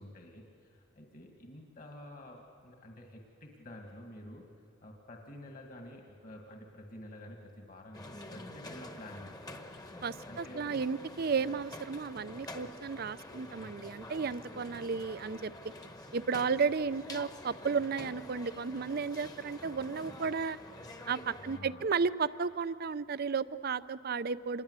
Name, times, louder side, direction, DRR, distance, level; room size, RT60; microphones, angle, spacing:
voice 1, 0.0-4.5 4.8-9.7 10.3-10.8 15.0-15.1 21.3-21.9, left 1 dB, 45° left, 2 dB, 2.1 m, -50 dB
sound 1, 7.9-21.6, left 1 dB, 20° left, 1.2 m, -47 dB
voice 2, 10.0-15.5 16.1-20.6 21.1-24.6, right 5 dB, 50° right, 16 dB, 0.5 m, -33 dB
26.5 x 21.0 x 8.2 m, 2.5 s
head